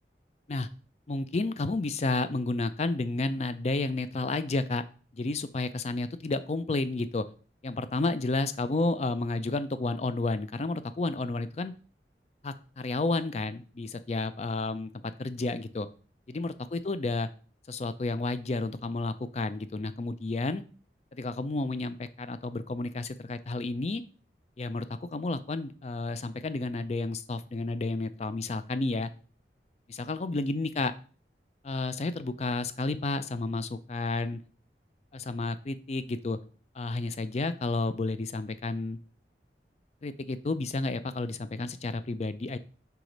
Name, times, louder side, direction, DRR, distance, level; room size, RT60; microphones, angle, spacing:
voice 1, 1.1-4.8 5.1-7.3 7.6-11.7 12.4-14.9 15.2-15.9 16.3-17.3 17.7-20.6 21.1-24.0 24.6-24.9 25.1-29.1 29.9-30.9 31.6-34.4 35.1-36.4 36.8-39.0 40.0-42.6, left 2 dB, 35° left, 12 dB, 0.4 m, -31 dB
4.7 x 3.9 x 5.2 m, 0.38 s
head